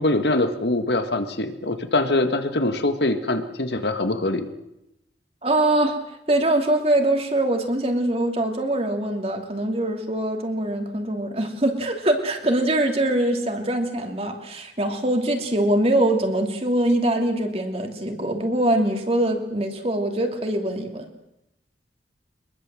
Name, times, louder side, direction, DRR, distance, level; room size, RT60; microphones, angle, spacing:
voice 1, 0.0-4.5, left 2 dB, 70° left, 8 dB, 1.9 m, -23 dB
voice 2, 5.4-6.0 6.3-21.0, right 1 dB, 35° right, 4 dB, 2.9 m, -23 dB
23.5 x 21.5 x 7.7 m, 0.87 s
head